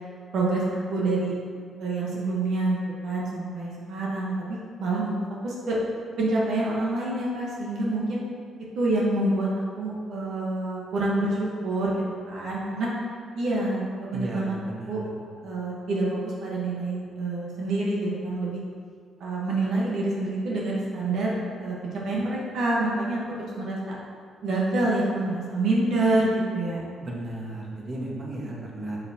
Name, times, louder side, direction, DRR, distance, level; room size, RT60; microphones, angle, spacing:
voice 1, 0.3-1.3 1.8-5.2 5.4-5.8 6.2-8.2 8.7-12.0 12.3-12.9 13.3-14.5 14.9-15.0 15.4-18.6 19.2-23.9 24.4-26.9, right 2 dB, 70° right, -5 dB, 1.2 m, -27 dB
voice 2, 14.1-15.1 27.0-29.0, right 1 dB, 35° right, -4 dB, 1.5 m, -35 dB
6.7 x 6.6 x 2.9 m, 2.1 s
cardioid pair, 90°, 0 cm